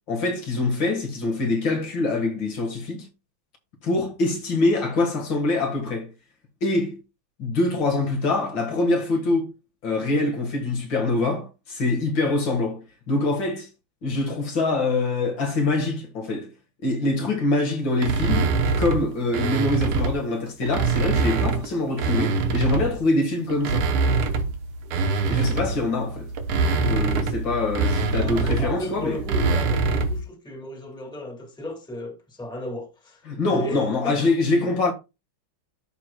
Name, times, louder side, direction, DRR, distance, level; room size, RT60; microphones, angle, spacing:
voice 1, 0.1-3.1 3.8-6.1 6.6-7.0 7.4-9.5 9.8-13.7 14.0-16.5 16.8-23.9 25.3-26.3 26.8-29.2 33.3-34.9, left 2 dB, 65° left, 2.4 m, -24 dB
sound 1, 18.0-20.2 20.6-23.0 23.5-30.3, right 4 dB, 85° right, 1.9 m, -24 dB
voice 2, 28.1-33.2 33.5-34.3, equal, ahead, 1.7 m, -34 dB
13.5 x 4.7 x 2.2 m
omnidirectional pair, 2.3 m